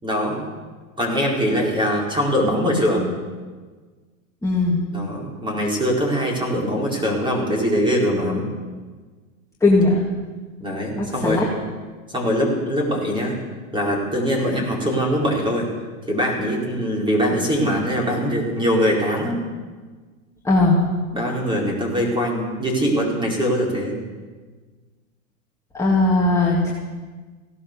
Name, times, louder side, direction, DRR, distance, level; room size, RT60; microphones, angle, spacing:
voice 1, 0.0-0.4 1.0-3.1 4.9-8.5 10.6-11.5 12.1-13.3 13.7-15.7 16.1-19.4 21.1-24.0, equal, 10° right, -1 dB, 4.6 m, -22 dB
voice 2, 4.4-4.8 9.6-10.0 11.0-11.5 20.4-20.8 25.7-26.7, left 2 dB, 5° left, -4 dB, 2.1 m, -18 dB
17.0 x 11.5 x 6.8 m, 1.4 s
hypercardioid pair, 120°, 43 cm